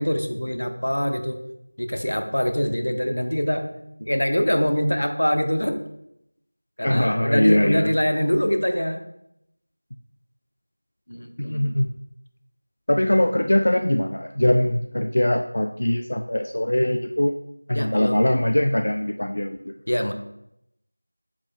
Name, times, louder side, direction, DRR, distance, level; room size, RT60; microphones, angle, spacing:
voice 1, 0.0-1.4 1.8-3.7 4.0-5.8 6.8-9.0 11.1-11.8 17.7-18.2 19.9-20.1, equal, 80° left, 6 dB, 1.1 m, -24 dB
voice 2, 6.8-7.9 11.4-11.9 12.9-17.3 17.7-19.7, left 1 dB, 40° left, 6 dB, 0.3 m, -21 dB
7.4 x 6.6 x 2.4 m, 0.79 s
figure-of-eight pair, 180°, 0 cm